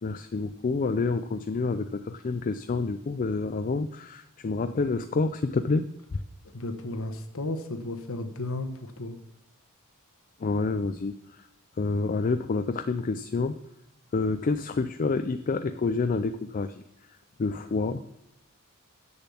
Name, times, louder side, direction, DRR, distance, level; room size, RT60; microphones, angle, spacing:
voice 1, 0.0-6.2 10.4-11.5 11.8-13.6 14.1-16.8 17.4-18.0, left 3 dB, 40° left, 9 dB, 0.4 m, -28 dB
voice 2, 6.5-9.2, left 2 dB, 65° left, 7 dB, 1.1 m, -34 dB
8.0 x 6.9 x 7.0 m, 0.85 s
head